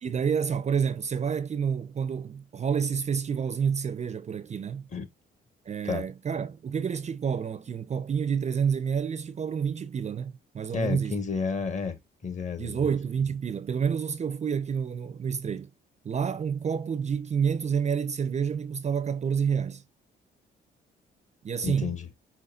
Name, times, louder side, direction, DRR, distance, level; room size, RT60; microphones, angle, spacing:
voice 1, 0.0-4.9 5.7-11.2 12.6-15.7 16.0-19.8 21.4-21.9, right 7 dB, 35° right, 0.5 m, -29 dB
voice 2, 10.7-12.0 12.2-12.9 21.6-22.1, left 5 dB, 40° left, 1.5 m, -31 dB
5.6 x 3.0 x 2.4 m
cardioid pair, 90°, 20 cm